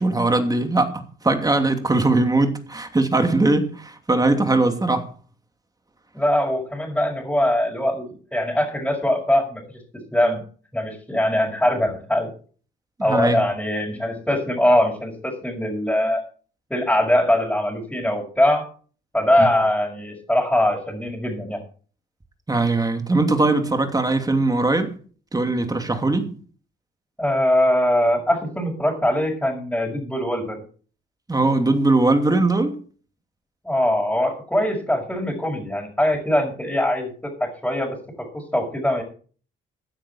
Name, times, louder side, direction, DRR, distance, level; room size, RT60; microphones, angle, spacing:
voice 1, 0.0-5.1 13.0-13.4 19.4-19.5 22.5-25.0 25.3-26.4 31.3-32.8, right 2 dB, 20° right, 2.9 m, -20 dB
voice 2, 6.1-9.8 10.1-10.4 10.7-12.3 13.0-16.2 16.7-18.7 19.1-21.6 27.2-30.6 33.6-37.1 37.4-38.0 38.3-39.0, left 1 dB, 5° left, 5.8 m, -22 dB
16.0 x 10.0 x 4.4 m
cardioid pair, 90°, 20 cm